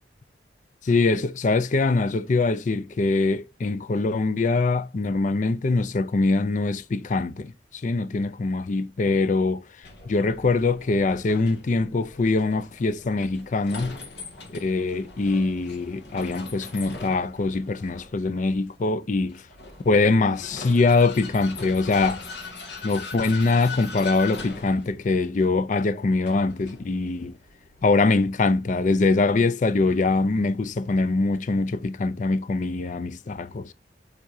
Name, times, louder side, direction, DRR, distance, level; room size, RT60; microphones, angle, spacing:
voice 1, 0.8-9.6 10.1-14.0 14.5-19.4 19.8-22.2 22.8-27.4 27.8-33.7, left 3 dB, 45° left, 0.4 m, -23 dB
Vehicle, 9.8-27.9, left 3 dB, 70° left, 1.8 m, -41 dB
7.4 x 4.8 x 2.6 m
head